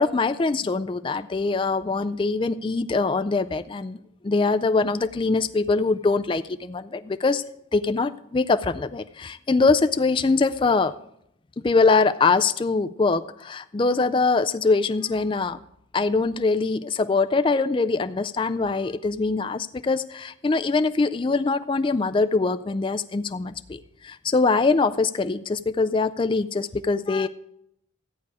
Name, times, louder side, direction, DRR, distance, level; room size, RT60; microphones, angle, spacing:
voice 1, 0.0-4.0 4.2-7.4 7.7-10.9 11.6-15.6 15.9-27.3, left 3 dB, 25° left, 10 dB, 0.3 m, -23 dB
14.0 x 8.3 x 4.8 m, 0.75 s
head